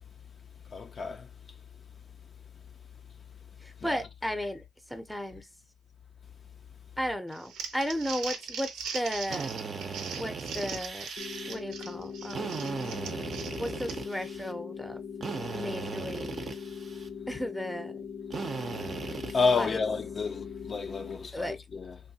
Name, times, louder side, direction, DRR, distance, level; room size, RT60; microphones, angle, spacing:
voice 1, 0.7-1.3 3.8-4.0 19.3-22.0, left 4 dB, 45° left, 0.3 m, -30 dB
voice 2, 3.6-4.6 4.9-5.5 7.0-9.5 10.1-11.1 11.4-12.8 13.6-15.0 15.5-16.5 17.3-18.0 19.6-19.7 21.3-21.6, equal, ahead, 0.6 m, -35 dB
Crumpling crinkling, 7.3-14.2, right 6 dB, 90° right, 0.6 m, -40 dB
Drill, 9.3-11.5 12.3-14.5 15.2-17.1 18.3-19.7, right 5 dB, 45° right, 0.5 m, -37 dB
sound 1, 11.2-21.2, left 6 dB, 85° left, 0.7 m, -41 dB
3.1 x 2.2 x 2.7 m
cardioid pair, 90°, 0 cm